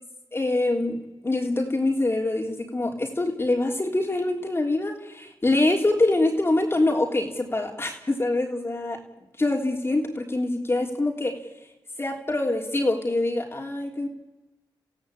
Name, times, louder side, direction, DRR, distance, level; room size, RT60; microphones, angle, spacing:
voice 1, 0.3-9.0 9.4-11.4 12.0-14.1, left 2 dB, 30° left, 1 dB, 3.4 m, -25 dB
29.5 x 15.5 x 8.6 m, 1.0 s
cardioid pair, 70°, 9 cm